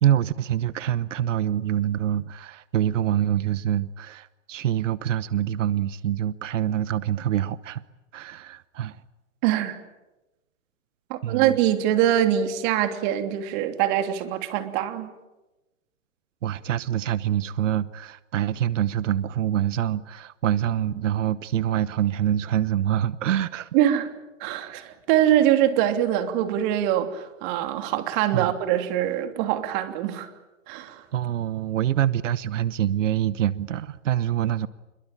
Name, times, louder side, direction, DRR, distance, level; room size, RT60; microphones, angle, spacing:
voice 1, 0.0-7.8 8.1-9.0 11.2-11.6 16.4-23.7 28.3-28.5 31.1-34.7, right 11 dB, 70° right, 1.0 m, -25 dB
voice 2, 9.4-9.8 11.1-15.1 23.7-24.1 24.4-30.3 30.7-31.0, right 11 dB, 40° right, 3.1 m, -23 dB
26.5 x 23.0 x 8.9 m
hypercardioid pair, 135°, 39 cm